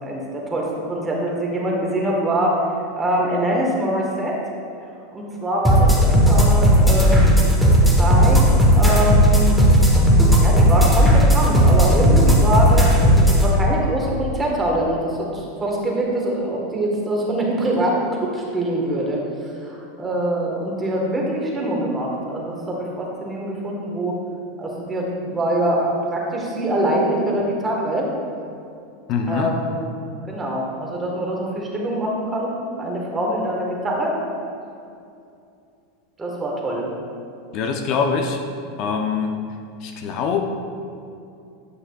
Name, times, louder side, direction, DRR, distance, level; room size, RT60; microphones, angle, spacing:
voice 1, 0.0-2.6 3.0-4.4 5.1-7.4 8.0-8.4 8.7-9.6 10.3-19.2 19.6-24.1 24.6-28.1 29.3-29.9 30.3-32.5 32.8-34.2 36.2-36.9, right 1 dB, 15° right, -2 dB, 1.3 m, -24 dB
sound 1, 5.6-13.4, equal, 5° left, 1.0 m, -14 dB
voice 2, 29.1-29.5 37.5-38.4 38.8-39.3 39.8-40.5, left 5 dB, 50° left, 4 dB, 0.5 m, -23 dB
9.4 x 5.8 x 2.3 m, 2.5 s
supercardioid pair, 130°, 0 cm